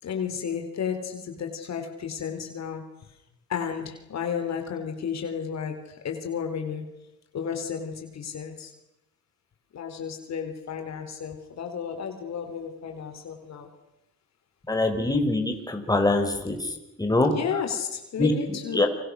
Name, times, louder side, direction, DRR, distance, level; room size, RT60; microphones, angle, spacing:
voice 1, 0.0-2.8 3.5-6.8 7.3-8.7 9.7-13.7 17.2-18.9, left 7 dB, 60° left, 5 dB, 4.0 m, -32 dB
voice 2, 14.7-16.7 17.0-17.3 18.2-18.3 18.7-18.9, left 2 dB, 10° left, 4 dB, 5.1 m, -23 dB
29.5 x 24.5 x 6.6 m, 0.92 s
cardioid pair, 90°, 30 cm